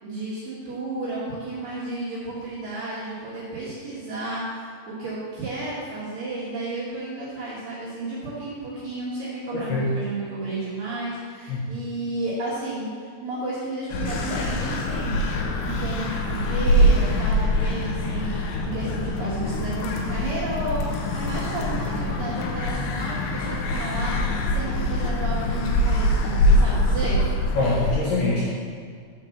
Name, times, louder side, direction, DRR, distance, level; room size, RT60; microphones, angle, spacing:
voice 1, 0.0-27.2, right 2 dB, 60° right, -9 dB, 2.5 m, -32 dB
voice 2, 9.5-9.9 11.5-11.8 27.5-28.6, left 2 dB, 70° left, -7 dB, 2.6 m, -24 dB
sound 1, 13.9-28.0, left 1 dB, 90° left, 2.3 m, -24 dB
7.3 x 5.1 x 7.1 m, 2.1 s
omnidirectional pair, 5.9 m